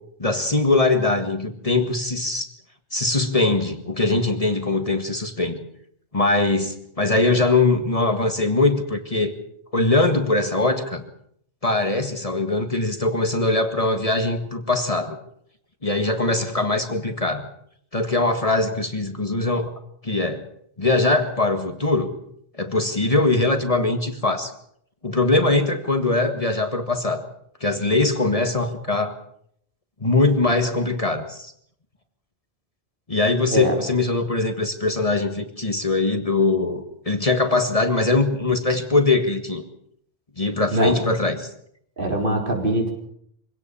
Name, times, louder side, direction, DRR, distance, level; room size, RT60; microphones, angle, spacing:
voice 1, 0.2-2.5 2.9-5.6 6.1-9.3 9.7-11.0 11.6-15.2 15.8-17.5 17.9-19.7 20.0-20.4 20.8-22.2 22.6-24.5 25.0-27.2 27.6-29.1 30.0-31.5 33.1-39.6 40.4-41.5, left 2 dB, 35° left, 7 dB, 1.8 m, -21 dB
voice 2, 42.0-42.9, right 1 dB, 55° right, 2 dB, 4.3 m, -22 dB
24.5 x 17.5 x 7.0 m, 0.69 s
omnidirectional pair, 1.0 m